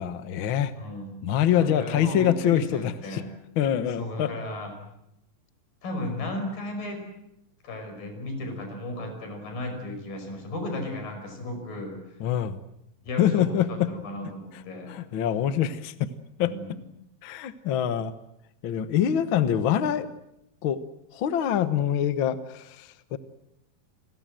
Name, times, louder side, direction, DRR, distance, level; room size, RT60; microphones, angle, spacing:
voice 1, 0.0-0.7 1.2-3.2 3.6-4.3 12.2-12.6 13.2-13.9 14.9-16.1 16.4-16.5 17.2-18.1 18.6-20.1 20.6-20.8 21.1-23.2, left 10 dB, 60° left, 12 dB, 1.3 m, -25 dB
voice 2, 0.8-1.2 1.5-3.3 4.0-4.7 5.8-7.0 7.6-12.0 13.0-15.0 16.4-16.8, left 1 dB, 85° left, 5 dB, 7.3 m, -35 dB
29.0 x 21.0 x 7.7 m, 0.83 s
omnidirectional pair, 3.9 m